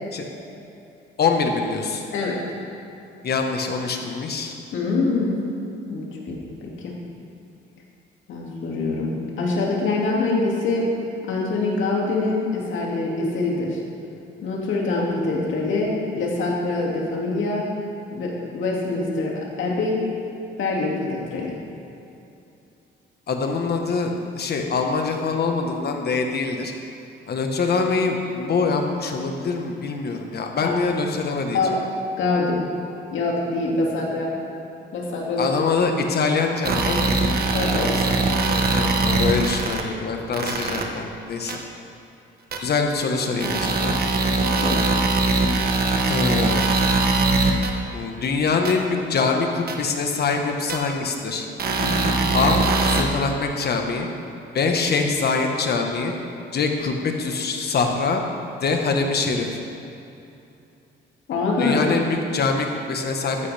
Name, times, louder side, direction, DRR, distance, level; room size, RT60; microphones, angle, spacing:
voice 1, 1.2-2.0 3.2-4.5 23.3-26.7 27.3-31.7 35.4-37.2 37.8-38.2 38.5-41.6 42.6-44.0 46.1-46.6 47.9-51.5 52.3-54.1 54.5-56.1 56.5-58.2 58.6-59.5 61.6-63.5, left 4 dB, 55° left, 3 dB, 1.4 m, -24 dB
voice 2, 4.7-5.4 5.9-6.9 8.3-10.9 11.2-13.8 14.4-17.7 18.1-20.0 20.6-21.6 30.6-30.7 31.5-31.7 32.2-32.6 33.1-34.3 34.9-35.5 37.5-37.9 44.6-44.8 51.8-52.1 61.3-61.8, left 3 dB, 75° left, -2 dB, 2.5 m, -24 dB
sound 1, 36.6-39.8 40.3-40.8 41.5-41.6 42.5-42.6 43.4-47.7 48.6-48.7 49.7-49.8 50.7-50.8 51.6-53.0, right 3 dB, 50° right, 1.3 m, -21 dB
14.0 x 10.0 x 3.5 m, 2.8 s
cardioid pair, 90°, 20 cm